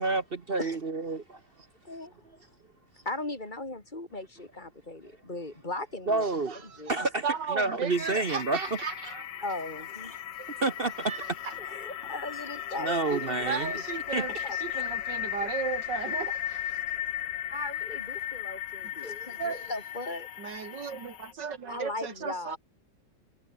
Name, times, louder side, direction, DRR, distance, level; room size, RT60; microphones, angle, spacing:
voice 1, 0.0-1.4 6.1-6.6 6.9-8.6 10.6-11.1 12.8-13.7 14.1-14.8, right 3 dB, 35° right, 1.1 m, -29 dB
voice 2, 3.0-6.2 6.7-7.0 9.4-10.2 11.6-13.7 14.4-14.8 17.5-20.3 21.6-22.6, left 2 dB, 25° left, 5.3 m, -38 dB
voice 3, 6.2-6.8 7.2-9.2 10.4-10.6 11.1-11.5 13.0-16.8 19.4-19.7 20.4-22.6, right 6 dB, 75° right, 2.4 m, -36 dB
sound 1, 7.9-21.3, left 11 dB, 75° left, 1.6 m, -36 dB
omnidirectional pair, 1.9 m